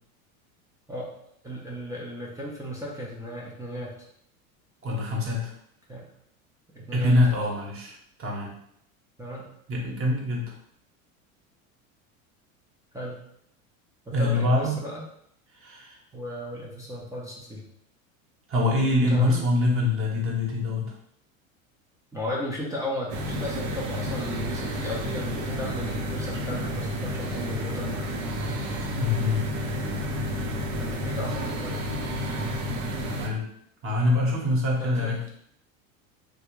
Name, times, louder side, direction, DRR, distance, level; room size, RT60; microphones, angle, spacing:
voice 1, 1.4-3.9 5.9-6.1 6.7-7.1 9.2-9.5 12.9-13.2 14.1-15.0 16.1-17.6 19.1-19.4 22.1-28.0 30.8-31.8 34.8-35.2, equal, 10° right, -5 dB, 0.7 m, -35 dB
voice 2, 4.8-5.5 6.9-7.9 8.2-8.5 9.7-10.5 14.1-14.8 15.5-16.0 18.5-20.9 29.0-29.4 33.0-33.4 33.8-35.2, left 2 dB, 30° right, -2 dB, 1.2 m, -24 dB
sound 1, 23.1-33.3, equal, 55° right, 0.8 m, -31 dB
3.3 x 2.4 x 3.1 m, 0.70 s
hypercardioid pair, 90°, 42 cm